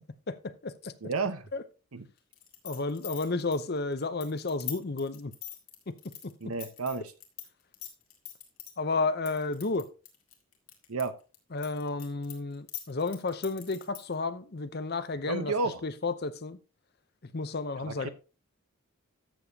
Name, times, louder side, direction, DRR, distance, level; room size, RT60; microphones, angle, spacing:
voice 1, 0.3-0.9 1.5-1.6 2.6-5.3 5.9-6.0 8.8-9.9 11.5-15.5 15.8-16.6 17.3-18.1, left 3 dB, 45° left, 0.7 m, -32 dB
voice 2, 1.0-1.5 1.9-2.1 6.4-7.1 10.9-11.1 15.3-15.8 17.8-18.1, right 4 dB, 85° right, 0.9 m, -31 dB
sound 1, 2.3-7.5 7.7-8.7 9.3-11.0 11.3-14.1, left 13 dB, 75° left, 2.0 m, -42 dB
13.0 x 7.0 x 2.8 m
head